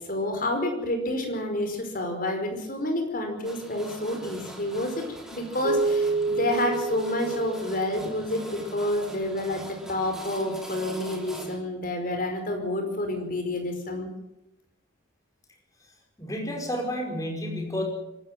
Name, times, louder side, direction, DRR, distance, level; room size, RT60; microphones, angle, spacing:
voice 1, 0.1-5.0 5.3-14.1, left 1 dB, 45° left, 4 dB, 5.1 m, -29 dB
sound 1, 3.4-11.6, equal, 5° right, 3.1 m, -43 dB
Keyboard (musical), 5.6-8.6, right 3 dB, 85° right, 1.2 m, -28 dB
voice 2, 16.2-17.8, equal, 20° left, 2 dB, 5.1 m, -30 dB
25.0 x 13.0 x 9.1 m, 0.88 s
head